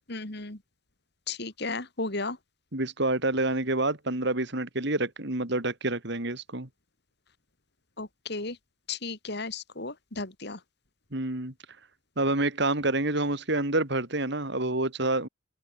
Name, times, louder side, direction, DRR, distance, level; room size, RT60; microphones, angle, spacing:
voice 1, 0.1-0.6 1.3-2.4 8.0-8.6 8.9-10.6, left 3 dB, 55° left, 2.7 m, -34 dB
voice 2, 2.7-6.7 11.1-11.5 12.2-15.3, right 2 dB, 55° right, 3.1 m, -28 dB
open air
head